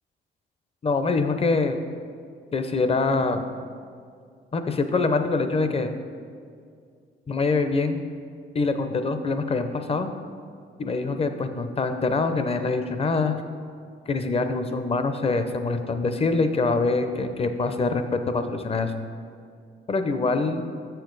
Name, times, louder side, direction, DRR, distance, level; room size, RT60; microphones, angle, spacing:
voice 1, 0.8-1.8 2.5-3.4 4.5-5.9 7.3-8.0 8.5-10.1 10.8-13.4 14.1-18.9 19.9-20.6, left 3 dB, 30° left, 8 dB, 0.6 m, -24 dB
6.9 x 6.8 x 4.0 m, 2.3 s
cardioid pair, 90°, 20 cm